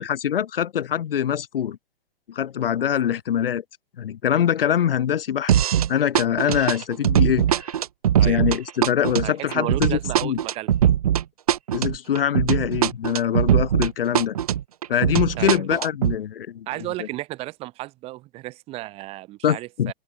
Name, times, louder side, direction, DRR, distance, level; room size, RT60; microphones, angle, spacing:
voice 1, 0.0-1.8 2.3-3.6 4.0-7.7 8.2-10.4 11.7-14.3 14.9-16.7 17.0-17.1 19.4-19.9, left 9 dB, 65° left, 3.3 m, -24 dB
sound 1, 5.5-5.9 6.1-13.9 14.1-16.1, right 10 dB, 40° right, 0.4 m, -21 dB
voice 2, 9.2-10.7 15.3-15.7 16.7-19.9, right 18 dB, 20° right, 2.9 m, -34 dB
hypercardioid pair, 170°, 31 cm